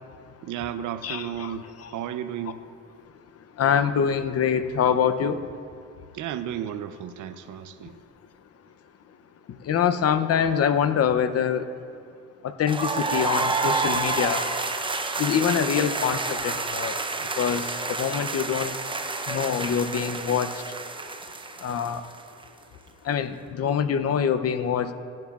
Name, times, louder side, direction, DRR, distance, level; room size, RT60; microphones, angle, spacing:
voice 1, 0.4-2.6 6.1-8.0, right 10 dB, 80° right, 11 dB, 0.7 m, -33 dB
voice 2, 1.0-1.9 3.5-5.4 9.5-11.7 12.4-14.5 15.2-17.0 17.4-18.7 19.3-20.6 21.6-22.0 23.0-24.9, left 8 dB, 55° left, 9 dB, 0.7 m, -25 dB
sound 1, 12.7-22.4, right 3 dB, 15° right, 0.7 m, -29 dB
17.5 x 10.5 x 2.4 m, 2.4 s
cardioid pair, 90°, 30 cm